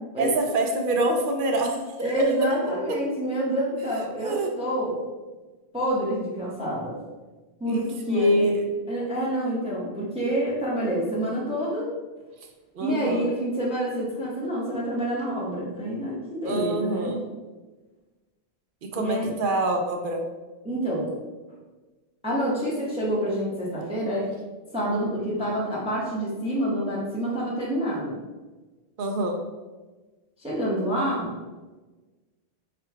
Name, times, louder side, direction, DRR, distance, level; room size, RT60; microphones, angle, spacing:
voice 1, 0.2-1.8 2.2-2.3 4.2-4.5 7.7-8.5 12.7-13.3 16.4-17.2 18.8-20.3 29.0-29.4, right 2 dB, 60° right, 3 dB, 0.6 m, -27 dB
voice 2, 2.0-4.9 5.7-7.0 7.6-8.6 8.9-11.9 12.8-17.1 18.9-19.3 20.6-21.1 22.2-24.3 24.7-28.1 30.4-31.3, equal, 5° right, -6 dB, 0.7 m, -27 dB
3.7 x 2.3 x 4.5 m, 1.2 s
omnidirectional pair, 1.2 m